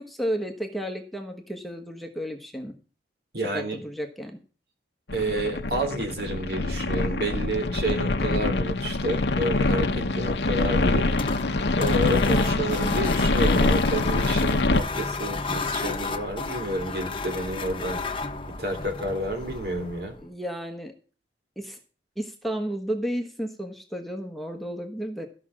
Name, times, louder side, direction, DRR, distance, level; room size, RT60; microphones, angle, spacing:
voice 1, 0.0-2.7 3.5-4.4 20.2-20.9 21.6-21.8 22.2-25.3, equal, ahead, 3 dB, 1.2 m, -32 dB
voice 2, 3.3-3.8 5.1-11.0 11.7-18.0 18.5-20.1, right 1 dB, 60° right, 5 dB, 3.1 m, -30 dB
sound 1, 5.1-14.8, left 2 dB, 75° left, 0.9 m, -24 dB
sound 2, 10.8-20.2, left 3 dB, 30° left, 1.1 m, -32 dB
13.5 x 6.0 x 7.5 m, 0.39 s
head